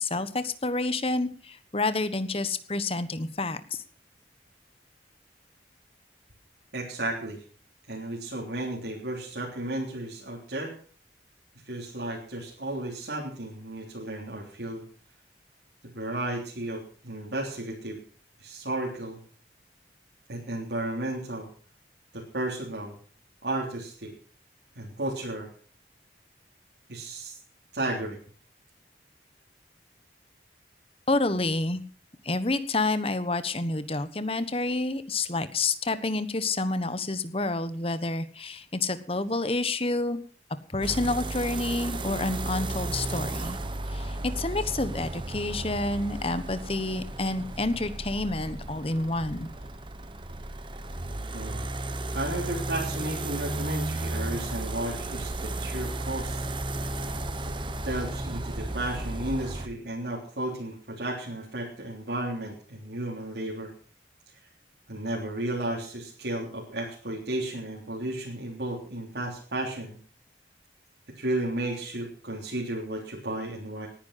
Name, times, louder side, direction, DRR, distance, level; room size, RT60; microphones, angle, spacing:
voice 1, 0.0-3.8 31.1-31.8 32.2-40.2 40.7-43.6 43.9-49.5, left 2 dB, 35° left, 12 dB, 1.2 m, -29 dB
voice 2, 6.7-7.4 7.9-10.7 11.6-14.8 15.9-18.0 18.4-19.2 20.3-21.5 22.1-22.9 23.4-24.1 24.7-25.5 26.9-27.3 27.7-28.2 51.3-51.6 52.1-56.4 57.4-57.5 57.8-63.7 64.9-70.0 71.2-73.9, right 1 dB, 75° right, -3 dB, 3.5 m, -33 dB
sound 1, 40.8-59.7, right 2 dB, 30° right, 1.1 m, -34 dB
19.0 x 10.0 x 5.7 m, 0.41 s
head